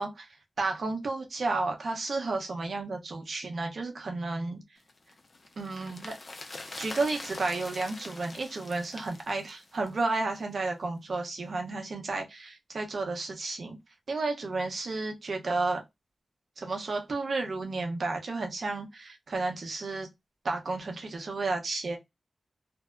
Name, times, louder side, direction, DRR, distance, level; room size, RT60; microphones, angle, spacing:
voice 1, 0.0-4.6 5.6-6.2 6.8-13.8 14.1-15.8 16.6-20.1 20.4-22.0, right 3 dB, 70° right, 0.8 m, -32 dB
sound 1, 4.9-10.3 10.6-10.7, left 2 dB, 55° left, 0.6 m, -44 dB
2.7 x 2.1 x 2.2 m
cardioid pair, 45°, 0 cm